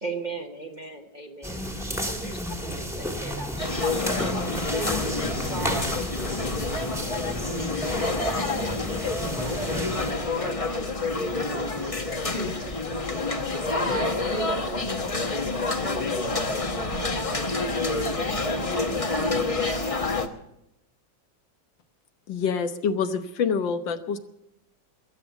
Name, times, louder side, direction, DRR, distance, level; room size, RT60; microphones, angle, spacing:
voice 1, 0.0-5.8, right 3 dB, 35° right, 0.8 m, -39 dB
sound 1, 1.4-10.1, equal, ahead, 1.4 m, -31 dB
sound 2, 3.6-20.3, left 3 dB, 25° left, 0.8 m, -28 dB
voice 2, 8.5-8.9 9.2-14.9 15.8-20.1, right 4 dB, 75° right, 2.0 m, -41 dB
sound 3, 14.4-18.1, left 6 dB, 50° left, 2.7 m, -48 dB
voice 3, 22.3-24.2, left 6 dB, 80° left, 1.7 m, -26 dB
21.5 x 8.0 x 8.0 m
omnidirectional pair, 2.0 m